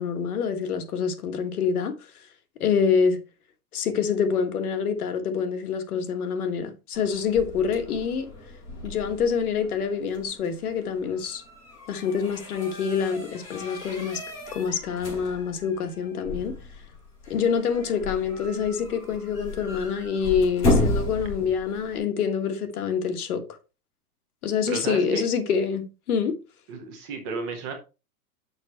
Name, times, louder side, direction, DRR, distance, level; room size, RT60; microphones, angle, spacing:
voice 1, 0.0-1.9 2.6-3.2 3.7-8.3 8.8-11.4 11.9-14.2 14.5-16.5 17.3-23.4 24.4-26.3, left 6 dB, 70° left, 1.5 m, -26 dB
sound 1, 6.9-22.0, left 1 dB, 25° left, 4.2 m, -33 dB
voice 2, 24.7-25.2 26.7-27.7, right 4 dB, 20° right, 0.9 m, -33 dB
6.5 x 5.4 x 4.2 m
supercardioid pair, 175°, 45 cm